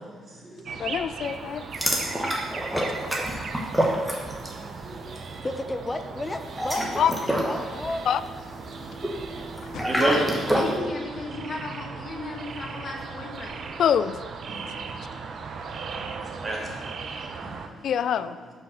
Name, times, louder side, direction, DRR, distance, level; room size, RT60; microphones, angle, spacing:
voice 1, 0.2-0.7 2.0-2.1 3.6-3.9 4.2-5.5 9.8-10.2 14.5-15.1 16.0-16.9 17.4-17.8, right 2 dB, 30° right, -3 dB, 2.0 m, -33 dB
sound 1, 0.6-17.7, right 5 dB, 55° right, 0.6 m, -38 dB
voice 2, 0.8-1.6 7.0-7.1 8.1-8.2 9.7-9.9 13.8-14.2 17.8-18.4, left 8 dB, 65° left, 14 dB, 0.3 m, -24 dB
sound 2, 1.7-4.6 4.9-5.2 6.4-10.8, equal, 5° right, 1.3 m, -28 dB
voice 3, 5.4-8.0, left 2 dB, 20° left, 7 dB, 0.6 m, -33 dB
voice 4, 10.0-13.7, left 3 dB, 45° left, 0 dB, 1.4 m, -33 dB
5.8 x 4.9 x 6.2 m, 1.5 s
cardioid pair, 90°, 0 cm